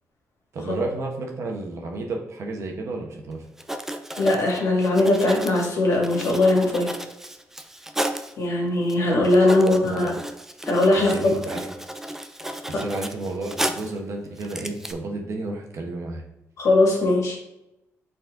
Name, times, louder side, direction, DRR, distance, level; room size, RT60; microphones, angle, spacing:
voice 1, 0.5-3.5 9.6-10.2 10.9-11.7 12.7-16.2, right 2 dB, 60° right, 1 dB, 1.2 m, -32 dB
Writing, 3.3-3.4 3.6-8.3 8.9-9.0 9.2-14.0 14.4-14.9, right 1 dB, 5° right, 0.5 m, -33 dB
voice 2, 4.2-6.9 8.4-10.1 10.7-11.1 12.7-12.8 16.6-17.4, left 2 dB, 70° left, -1 dB, 2.0 m, -20 dB
5.7 x 4.3 x 3.8 m, 0.89 s
cardioid pair, 90°, 6 cm